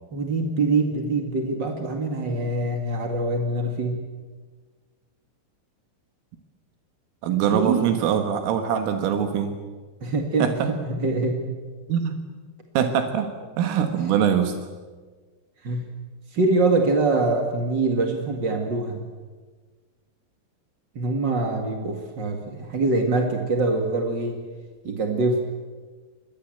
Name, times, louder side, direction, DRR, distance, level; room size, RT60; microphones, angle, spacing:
voice 1, 0.1-4.0 7.5-8.0 10.0-10.5 10.9-11.4 12.8-12.9 15.6-15.8 16.3-19.0 20.9-24.4 24.8-25.4, right 3 dB, 60° right, 3 dB, 1.1 m, -24 dB
voice 2, 7.2-9.6 10.4-10.5 11.9-12.2 12.8-13.3 13.6-14.6, right 8 dB, 80° right, 6 dB, 4.1 m, -23 dB
29.0 x 22.5 x 7.9 m, 1.4 s
omnidirectional pair, 5.8 m